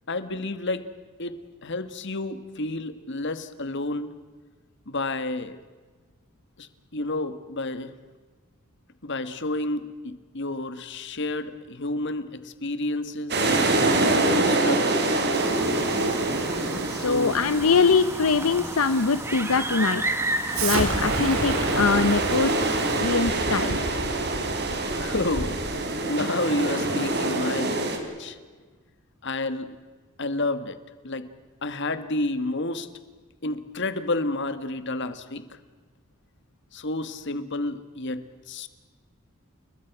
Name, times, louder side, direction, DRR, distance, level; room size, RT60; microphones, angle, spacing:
voice 1, 0.1-0.9 1.2-4.1 4.9-5.6 6.6-8.0 9.0-13.8 14.4-15.2 17.0-17.4 25.0-25.6 26.0-28.4 29.2-29.7 30.2-30.8 31.0-31.3 31.6-32.9 33.4-35.4 36.7-38.7, left 2 dB, 55° left, 11 dB, 1.6 m, -30 dB
sound 1, 13.3-28.0, right 2 dB, 50° right, 3.4 m, -26 dB
sound 2, 15.3-23.0, right 2 dB, 10° right, 1.4 m, -33 dB
voice 2, 16.9-20.0 20.6-22.5 23.0-23.8, left 4 dB, 75° left, 12 dB, 0.7 m, -23 dB
Explosion, 20.5-25.7, right 2 dB, 75° right, 4.6 m, -31 dB
30.0 x 22.0 x 6.0 m, 1.4 s
head